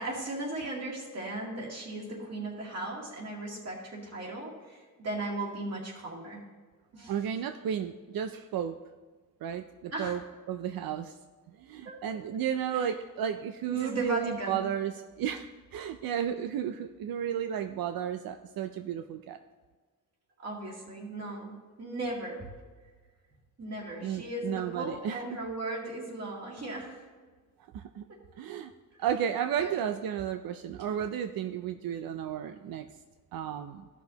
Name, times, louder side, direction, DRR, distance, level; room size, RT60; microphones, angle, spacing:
voice 1, 0.0-6.4 6.9-7.1 9.9-10.2 11.8-12.0 12.7-12.9 13.7-14.6 20.4-22.5 23.6-27.0 28.1-28.2 29.6-29.8, right 2 dB, 45° right, -3 dB, 2.4 m, -37 dB
voice 2, 7.1-8.7 9.4-10.2 10.5-11.2 11.6-15.5 15.7-19.4 24.0-25.2 27.7-28.0 28.4-28.7 29.0-32.9 33.3-33.8, right 9 dB, 85° right, 8 dB, 0.5 m, -33 dB
14.5 x 6.1 x 2.9 m, 1.4 s
wide cardioid pair, 150°, 34 cm